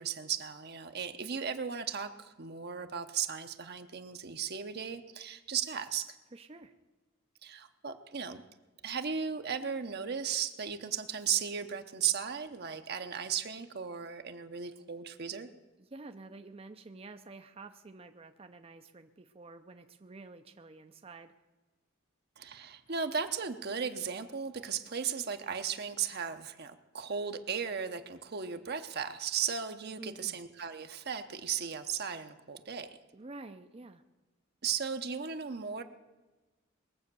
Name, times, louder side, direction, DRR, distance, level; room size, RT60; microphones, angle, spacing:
voice 1, 0.0-6.1 7.4-8.4 8.8-15.5 22.4-33.0 34.6-35.8, right 7 dB, 50° right, 7 dB, 0.9 m, -36 dB
voice 2, 6.3-6.7 15.8-21.3 30.0-30.4 33.1-34.0, right 3 dB, 30° right, 7 dB, 0.6 m, -49 dB
21.0 x 7.7 x 6.9 m, 1.2 s
head